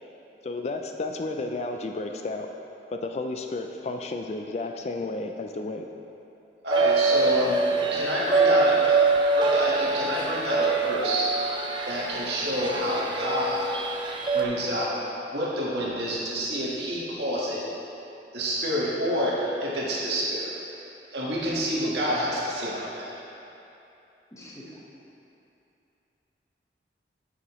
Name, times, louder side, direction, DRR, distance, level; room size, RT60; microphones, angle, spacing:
voice 1, 0.4-2.5 2.9-5.9, left 2 dB, 35° left, 4 dB, 0.3 m, -32 dB
voice 2, 6.6-9.0 9.3-11.3 11.8-13.6 14.3-15.0 15.3-17.7 18.3-20.5 21.1-23.2, equal, 75° right, -6 dB, 1.6 m, -28 dB
sound 1, 6.7-14.5, right 3 dB, 25° right, 0.5 m, -24 dB
voice 3, 7.5-8.9 9.9-10.3 12.5-13.0 24.3-24.8, equal, 20° left, -5 dB, 1.1 m, -45 dB
9.0 x 6.8 x 3.1 m, 2.8 s
head